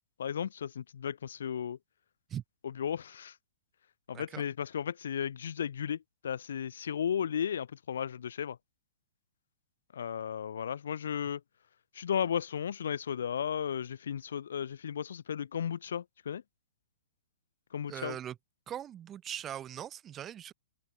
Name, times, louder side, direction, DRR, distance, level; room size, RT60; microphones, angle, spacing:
voice 1, 0.2-1.8 2.8-3.4 4.1-8.6 9.9-11.4 11.9-16.4 17.7-18.2, left 8 dB, 75° left, 1.8 m, -34 dB
voice 2, 17.9-18.4 18.7-20.5, right 10 dB, 15° right, 2.1 m, -40 dB
open air
hypercardioid pair, 165°, 0 cm